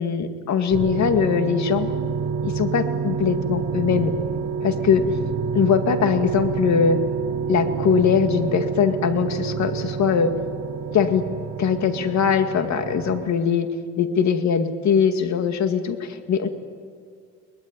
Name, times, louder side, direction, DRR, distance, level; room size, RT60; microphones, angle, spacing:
voice 1, 0.0-1.9 2.4-4.1 4.6-5.0 5.5-7.0 7.5-10.3 10.9-11.2 11.6-13.7 14.0-16.5, left 7 dB, 65° left, 7 dB, 2.2 m, -21 dB
sound 1, 0.7-13.3, right 6 dB, 55° right, 1.6 m, -28 dB
23.0 x 20.0 x 9.9 m, 2.1 s
cardioid pair, 90°, 30 cm